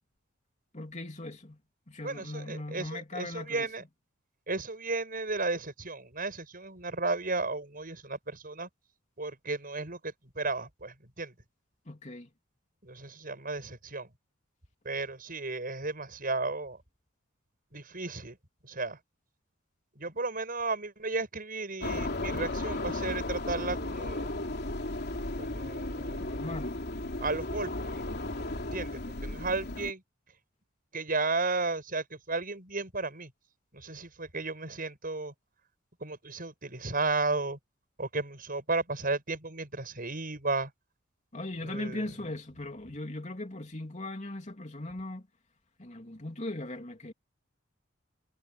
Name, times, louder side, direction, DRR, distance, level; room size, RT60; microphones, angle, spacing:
voice 1, 0.7-1.6 1.9-3.7 11.9-12.3 26.2-26.8 41.3-45.3 45.8-47.1, left 1 dB, 35° left, 3.1 m, -39 dB
voice 2, 2.0-3.8 4.5-8.7 9.2-11.3 12.8-14.1 14.8-16.8 17.7-18.4 18.6-19.0 20.0-24.3 25.4-26.4 27.2-28.0 28.6-30.0 30.9-33.3 33.7-35.3 36.0-37.6 38.0-40.7 41.6-42.1, right 3 dB, 45° right, 7.5 m, -34 dB
sound 1, 21.8-29.9, left 2 dB, 55° left, 3.3 m, -35 dB
head